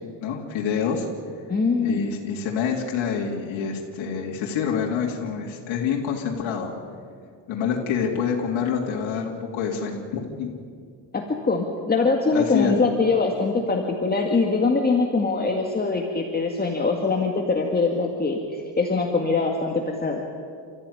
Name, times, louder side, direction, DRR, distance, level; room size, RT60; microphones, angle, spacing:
voice 1, 0.2-1.1 1.8-6.7 7.5-10.5 12.3-12.7, left 7 dB, 75° left, -2 dB, 3.4 m, -26 dB
voice 2, 1.5-2.1 11.1-20.3, left 3 dB, 20° left, 1 dB, 2.0 m, -23 dB
29.5 x 14.5 x 9.8 m, 2.2 s
cardioid pair, 130°, 47 cm